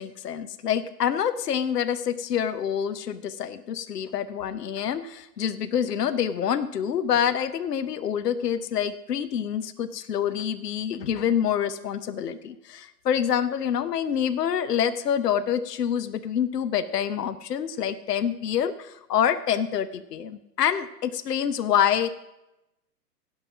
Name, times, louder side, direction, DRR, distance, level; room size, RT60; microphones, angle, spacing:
voice 1, 0.0-22.1, left 9 dB, 70° left, 14 dB, 0.8 m, -26 dB
16.5 x 5.6 x 5.9 m, 0.93 s
figure-of-eight pair, 125°, 50 cm